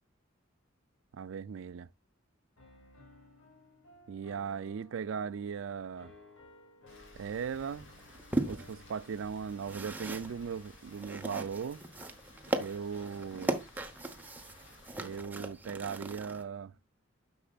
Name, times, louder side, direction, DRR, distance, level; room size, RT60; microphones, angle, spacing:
voice 1, 1.1-1.9 4.1-6.1 7.1-7.9 8.5-11.8 12.6-13.5 15.0-16.7, right 6 dB, 70° right, 0.4 m, -38 dB
Piano, 2.6-9.4, left 2 dB, 85° left, 2.6 m, -58 dB
Rain, 6.9-15.2, left 2 dB, 65° left, 2.3 m, -57 dB
sound 1, 7.3-16.4, right 2 dB, 10° right, 0.9 m, -39 dB
10.0 x 6.3 x 2.4 m
head